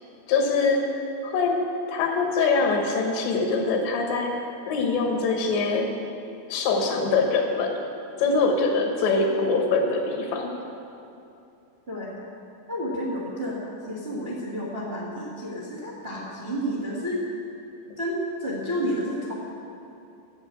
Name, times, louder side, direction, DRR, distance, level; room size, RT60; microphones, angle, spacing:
voice 1, 0.3-1.0 1.2-4.3 4.7-5.9 6.5-7.8 8.2-10.5, left 4 dB, 75° left, 2 dB, 3.5 m, -23 dB
voice 2, 11.9-12.2 12.7-17.2 18.0-19.3, equal, 45° right, -5 dB, 0.7 m, -30 dB
12.5 x 7.8 x 8.4 m, 2.7 s
omnidirectional pair, 5.2 m